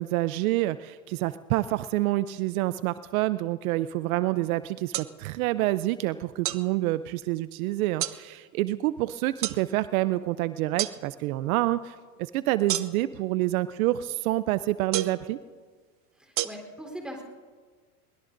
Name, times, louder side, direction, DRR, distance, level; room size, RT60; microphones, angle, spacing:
voice 1, 0.0-15.4, right 16 dB, 70° right, 15 dB, 0.6 m, -27 dB
sound 1, 4.9-5.1 6.4-6.6 8.0-8.2 9.4-9.6 10.8-11.0 12.7-13.1 14.9-15.2 16.4-16.5, right 14 dB, 30° right, 0.6 m, -29 dB
voice 2, 16.2-17.2, equal, ahead, 1 dB, 3.7 m, -40 dB
22.5 x 20.5 x 2.6 m, 1.5 s
supercardioid pair, 120°, 44 cm